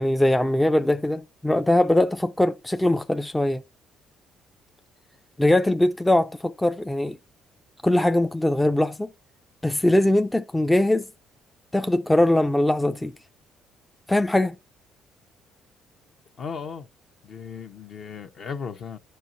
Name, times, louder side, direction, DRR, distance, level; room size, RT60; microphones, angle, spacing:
voice 1, 0.0-3.6 5.4-7.2 7.8-9.1 9.6-11.1 11.7-13.1 14.1-14.6, left 1 dB, 10° left, 0.4 m, -21 dB
voice 2, 16.4-16.9 17.2-19.0, left 6 dB, 55° left, 1.0 m, -36 dB
13.5 x 4.6 x 2.6 m
supercardioid pair, 80°, 0 cm